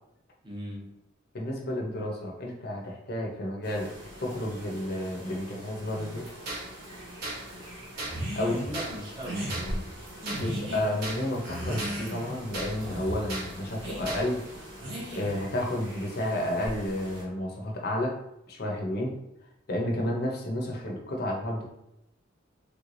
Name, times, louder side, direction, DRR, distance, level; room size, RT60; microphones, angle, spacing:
voice 1, 0.4-1.0 8.3-9.9, equal, 25° right, -3 dB, 0.7 m, -39 dB
voice 2, 1.3-3.9 4.2-6.3 8.4-8.6 10.4-14.4 15.1-18.1 18.5-19.1 19.7-21.6, left 1 dB, 50° left, -1 dB, 0.6 m, -31 dB
sound 1, 3.6-17.2, equal, 70° right, 1.3 m, -43 dB
sound 2, 6.2-14.6, right 2 dB, 50° right, 0.9 m, -38 dB
sound 3, 8.0-8.7 9.2-9.6 10.2-10.8 11.4-12.4 12.8-13.2 13.8-14.1 14.8-15.4, right 1 dB, 85° right, 1.1 m, -36 dB
3.4 x 3.1 x 2.5 m, 0.87 s
head